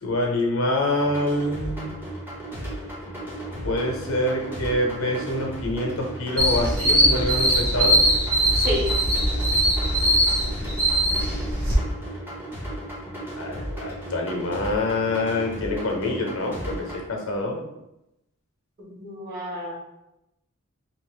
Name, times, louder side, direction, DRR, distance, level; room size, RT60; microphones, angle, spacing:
voice 1, 0.0-1.9 3.6-8.1 13.3-17.7, left 1 dB, 65° left, 1 dB, 0.7 m, -26 dB
sound 1, 1.0-17.0, right 1 dB, 10° right, 0.8 m, -35 dB
sound 2, 6.4-11.7, right 1 dB, 85° right, 1.1 m, -21 dB
voice 2, 8.5-8.9 18.8-19.7, equal, 40° right, -8 dB, 1.4 m, -29 dB
2.7 x 2.5 x 3.7 m, 0.88 s
head